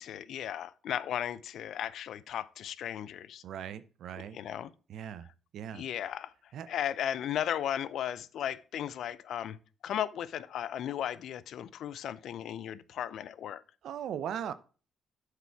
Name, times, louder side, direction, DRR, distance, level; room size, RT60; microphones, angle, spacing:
voice 1, 0.0-3.4 4.2-4.7 5.7-6.3 6.7-9.6 9.8-13.6, left 10 dB, 75° left, 0.5 m, -35 dB
voice 2, 3.4-4.4 4.9-5.3 5.5-5.8 6.5-6.7 13.8-14.5, right 9 dB, 75° right, 0.6 m, -38 dB
8.0 x 4.9 x 4.5 m
cardioid pair, 90°, 0 cm